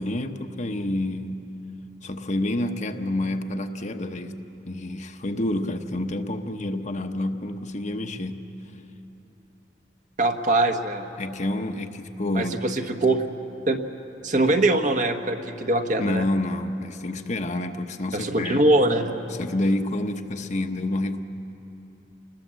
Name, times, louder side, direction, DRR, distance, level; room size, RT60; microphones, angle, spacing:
voice 1, 0.0-1.4 2.0-4.3 4.7-8.5 11.2-12.6 14.5-14.7 16.0-18.6 19.3-21.2, left 1 dB, 40° left, 6 dB, 1.0 m, -28 dB
voice 2, 10.2-11.1 12.3-13.3 13.7-13.8 14.2-16.2 18.1-19.1, right 2 dB, 45° right, 5 dB, 1.2 m, -22 dB
28.0 x 21.0 x 7.5 m, 2.9 s
head